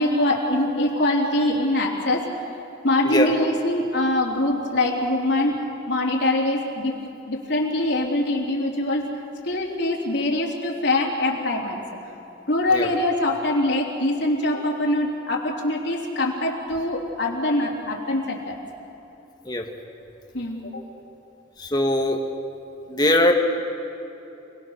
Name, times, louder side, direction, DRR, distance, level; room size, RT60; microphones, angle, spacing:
voice 1, 0.0-2.3 2.8-5.6 5.9-7.0 7.3-9.1 9.4-11.8 12.5-18.6 20.3-20.7, left 1 dB, 60° left, -2 dB, 3.6 m, -23 dB
voice 2, 21.6-22.2 22.9-23.3, left 1 dB, 20° left, 3 dB, 1.8 m, -21 dB
29.5 x 20.5 x 6.6 m, 3.0 s
head